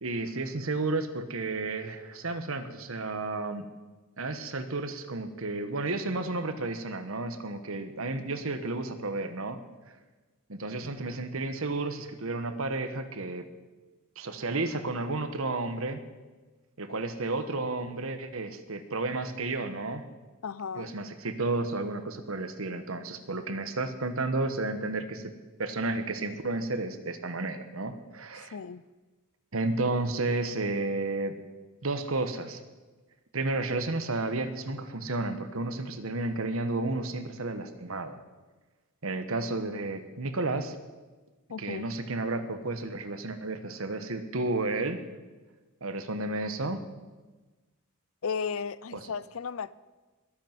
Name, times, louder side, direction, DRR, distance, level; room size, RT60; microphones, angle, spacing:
voice 1, 0.0-3.7 4.2-9.6 10.5-13.5 14.2-16.0 16.8-20.0 20.8-25.3 25.6-28.5 29.5-31.3 31.8-32.6 33.3-38.2 39.0-40.8 41.6-45.0 45.8-46.8, right 2 dB, 70° right, 1.3 m, -32 dB
voice 2, 20.4-21.0 23.4-23.6 28.5-28.8 41.5-41.8 48.2-49.7, left 6 dB, 70° left, 0.5 m, -35 dB
21.5 x 8.4 x 6.0 m
head